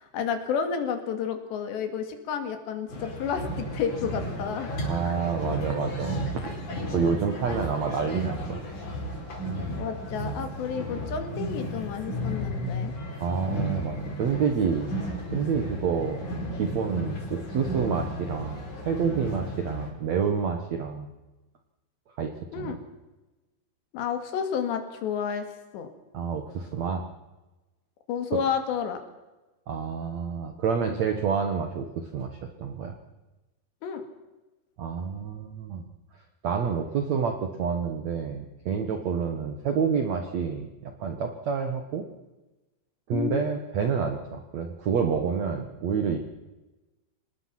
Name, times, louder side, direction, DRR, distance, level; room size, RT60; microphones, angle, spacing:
voice 1, 0.0-4.7 5.0-5.2 9.8-12.9 22.5-22.8 23.9-25.5 25.7-25.9 28.1-29.0 33.8-34.0 43.1-43.5, left 7 dB, 75° left, 7 dB, 4.2 m, -31 dB
sound 1, 2.9-19.9, equal, 45° left, 5.6 m, -33 dB
voice 2, 4.8-6.6 6.9-8.6 12.5-12.7 13.2-14.9 15.3-16.2 16.5-21.1 22.2-22.8 26.1-27.0 29.7-32.9 34.8-35.9 36.4-42.1 43.1-46.2, right 6 dB, 70° right, 5 dB, 1.7 m, -28 dB
25.5 x 20.0 x 5.9 m, 1.1 s
omnidirectional pair, 5.1 m